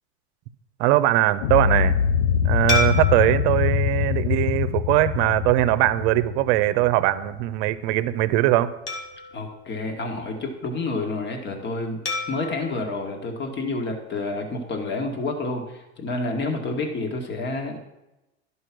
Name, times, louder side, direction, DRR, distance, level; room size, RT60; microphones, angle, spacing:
voice 1, 0.8-1.9 2.4-8.7, right 15 dB, 60° right, 15 dB, 0.7 m, -21 dB
sound 1, 1.4-7.5, left 9 dB, 60° left, 0.8 m, -24 dB
sound 2, 2.7-5.4 5.9-6.1 8.9-10.7 12.1-14.3, left 4 dB, 80° left, 2.2 m, -33 dB
voice 2, 9.3-12.0 12.3-17.8, left 2 dB, 35° left, 3 dB, 2.0 m, -29 dB
11.0 x 5.5 x 6.1 m, 0.97 s
hypercardioid pair, 100°, 33 cm